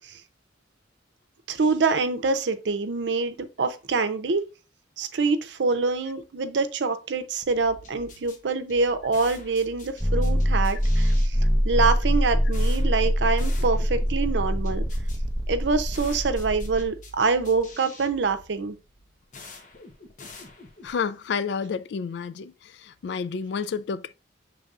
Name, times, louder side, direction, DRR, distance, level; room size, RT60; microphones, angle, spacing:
voice 1, 1.5-4.4 5.0-11.1 11.6-14.8 15.5-18.8, right 4 dB, 80° right, 0.6 m, -25 dB
sound 1, 7.4-21.0, left 2 dB, 45° left, 0.8 m, -47 dB
sound 2, 10.0-16.9, equal, ahead, 0.5 m, -24 dB
voice 2, 20.8-22.5 23.0-24.1, left 6 dB, 70° left, 0.3 m, -29 dB
6.6 x 3.4 x 2.4 m
head